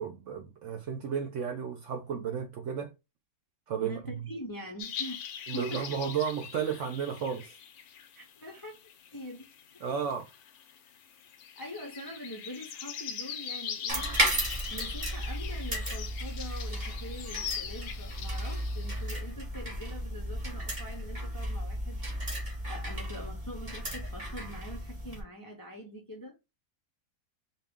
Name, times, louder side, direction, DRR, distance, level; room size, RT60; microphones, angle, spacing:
voice 1, 0.0-2.9 3.7-4.3 5.5-7.6 9.8-10.3, right 7 dB, 65° right, 0.8 m, -33 dB
voice 2, 3.8-5.2 5.5-5.9 8.1-8.8 9.1-9.5 9.7-9.8 11.6-14.2 14.7-22.1 22.6-26.3, equal, 25° left, 0.4 m, -44 dB
sound 1, 4.8-19.0, left 8 dB, 75° left, 1.1 m, -42 dB
sound 2, 13.9-25.2, right 1 dB, 30° right, 1.5 m, -34 dB
4.3 x 2.3 x 3.5 m
omnidirectional pair, 1.6 m